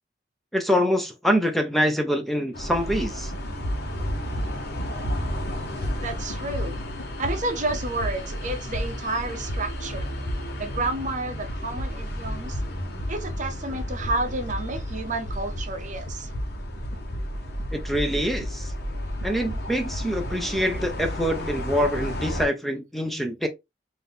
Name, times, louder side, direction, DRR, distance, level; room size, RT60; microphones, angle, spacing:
voice 1, 0.5-3.3 17.7-18.7 19.2-23.5, equal, ahead, 0.7 m, -25 dB
sound 1, 2.5-22.5, equal, 60° left, 1.1 m, -33 dB
sound 2, 3.3-3.4 3.6-11.2 11.5-15.8 16.1-18.9 19.2-21.3, equal, 85° left, 0.9 m, -34 dB
voice 2, 6.0-6.7 7.2-10.1 10.6-12.6 13.1-16.3, right 2 dB, 45° right, 0.7 m, -30 dB
4.0 x 2.7 x 3.4 m
head